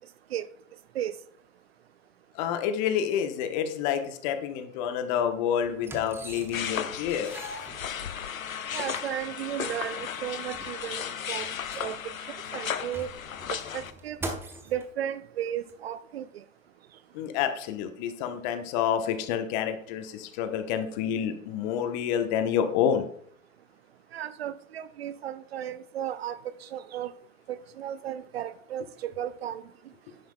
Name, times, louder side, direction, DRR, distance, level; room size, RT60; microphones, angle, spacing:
voice 1, 2.4-7.4 17.1-23.0, left 8 dB, 35° left, 0.9 m, -28 dB
sound 1, 5.0-5.1 5.8-6.8 7.1-8.4 9.2-9.3 9.6-9.7 10.1-12.2 12.7-14.9 15.7-15.8, right 2 dB, 5° right, 0.7 m, -42 dB
sound 2, 6.5-13.9, left 8 dB, 80° left, 0.7 m, -35 dB
voice 2, 8.7-13.1 13.5-14.2 14.7-16.4 24.1-27.1 27.5-29.6, right 10 dB, 50° right, 0.5 m, -35 dB
10.5 x 9.2 x 2.2 m
figure-of-eight pair, 110°, 41 cm